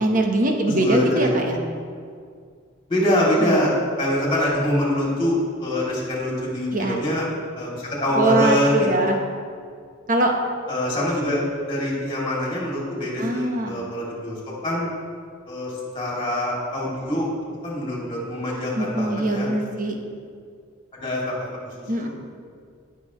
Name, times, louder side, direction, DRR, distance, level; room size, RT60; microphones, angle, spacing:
voice 1, 0.0-1.6 3.4-3.6 6.7-7.0 8.1-9.2 10.1-10.3 13.2-13.9 18.7-20.0 21.9-22.1, right 2 dB, 40° right, 2 dB, 1.0 m, -22 dB
voice 2, 0.7-1.3 2.9-7.3 7.5-9.2 10.7-14.4 14.6-14.9 15.5-17.3 17.6-19.5 20.9-21.3 21.6-22.1, left 1 dB, 25° left, -5 dB, 2.7 m, -24 dB
17.5 x 6.1 x 3.1 m, 2.2 s
head